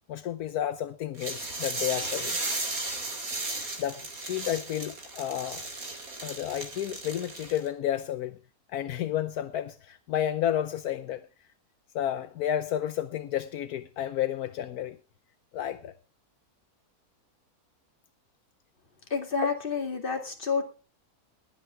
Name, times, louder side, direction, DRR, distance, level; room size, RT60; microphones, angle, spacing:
voice 1, 0.1-2.4 3.8-5.7 6.2-8.4 8.7-11.2 11.9-15.0 15.5-15.9 19.4-19.6, left 11 dB, 75° left, 1.3 m, -31 dB
sound 1, 1.2-7.7, right 2 dB, 65° right, 3.6 m, -35 dB
voice 2, 19.1-20.6, left 4 dB, 35° left, 2.4 m, -29 dB
20.0 x 8.6 x 3.4 m
omnidirectional pair, 1.6 m